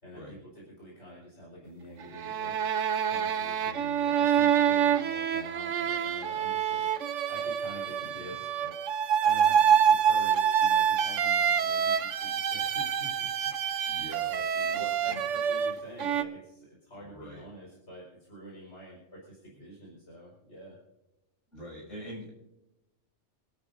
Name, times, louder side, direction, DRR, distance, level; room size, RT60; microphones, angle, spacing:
voice 1, 0.0-8.8 9.2-13.3 13.7-20.8, right 1 dB, 65° left, -4 dB, 5.2 m, -47 dB
sound 1, 2.0-16.2, right 8 dB, 75° right, 1.1 m, -26 dB
voice 2, 8.0-8.4 13.9-14.3 14.7-15.2 17.0-17.4 21.5-22.3, equal, 80° left, -3 dB, 7.2 m, -44 dB
26.5 x 13.0 x 2.7 m, 0.95 s
omnidirectional pair, 1.3 m